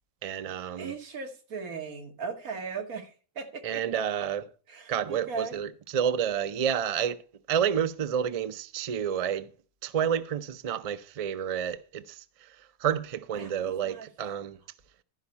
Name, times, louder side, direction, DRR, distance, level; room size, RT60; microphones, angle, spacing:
voice 1, 0.2-0.9 3.6-4.5 4.9-7.2 7.5-9.5 9.8-12.2 12.8-14.6, right 8 dB, 60° right, 0.3 m, -29 dB
voice 2, 0.8-4.3 4.7-5.6 13.4-14.1, right 5 dB, 90° right, 1.8 m, -38 dB
12.0 x 5.2 x 5.7 m
omnidirectional pair, 1.4 m